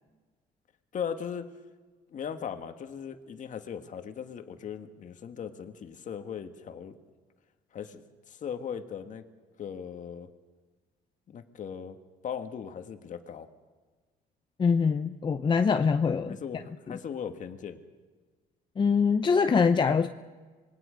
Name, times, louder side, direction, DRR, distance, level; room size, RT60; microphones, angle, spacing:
voice 1, 0.9-1.5 2.1-7.0 7.7-9.2 9.6-10.3 11.3-12.0 12.2-13.5 16.3-17.8, left 7 dB, 50° left, 7 dB, 1.7 m, -38 dB
voice 2, 14.6-16.4 18.8-20.1, left 5 dB, 30° left, 8 dB, 0.7 m, -23 dB
26.0 x 20.5 x 5.2 m, 1.4 s
cardioid pair, 110°, 17 cm